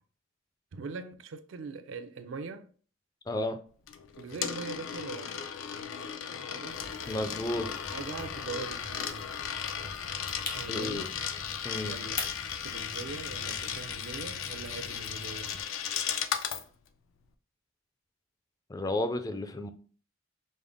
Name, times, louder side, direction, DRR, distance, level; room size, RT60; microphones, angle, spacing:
voice 1, 0.7-2.7 4.2-5.4 6.3-6.8 7.9-9.4 10.5-11.1 11.8-12.3 12.6-15.6, right 4 dB, 75° right, 0.4 m, -41 dB
voice 2, 3.3-3.6 7.1-7.8 10.7-11.1 11.6-11.9 18.7-19.7, left 1 dB, 20° left, 0.3 m, -32 dB
Coin (dropping), 3.9-16.6, left 8 dB, 85° left, 0.4 m, -36 dB
sound 1, 6.7-15.6, left 3 dB, 45° left, 0.8 m, -44 dB
5.2 x 2.0 x 3.4 m
head